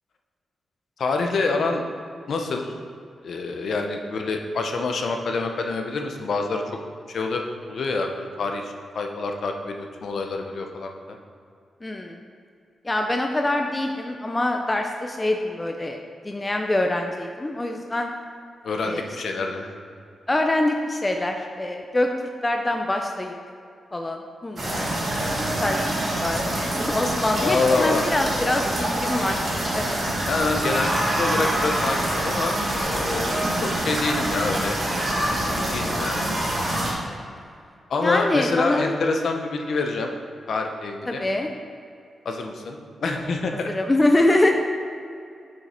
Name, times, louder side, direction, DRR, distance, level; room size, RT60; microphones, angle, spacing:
voice 1, 1.0-1.8 2.3-2.7 3.2-6.6 7.1-7.4 7.7-11.2 18.6-19.7 27.4-28.0 30.3-30.9 31.2-34.8 35.5-36.2 37.9-40.1 40.5-41.2 42.2-43.7, left 3 dB, 60° left, 3 dB, 0.7 m, -26 dB
voice 2, 11.8-12.2 12.8-18.1 18.8-19.0 20.3-22.1 22.4-23.3 23.9-24.9 25.6-25.8 26.1-29.4 29.7-30.0 38.0-38.9 41.1-41.5 43.7-44.5, left 1 dB, 15° left, 3 dB, 0.4 m, -24 dB
sound 1, 24.5-36.9, right 1 dB, 40° right, 1.7 m, -25 dB
6.4 x 6.3 x 4.3 m, 2.4 s
wide cardioid pair, 170°, 0 cm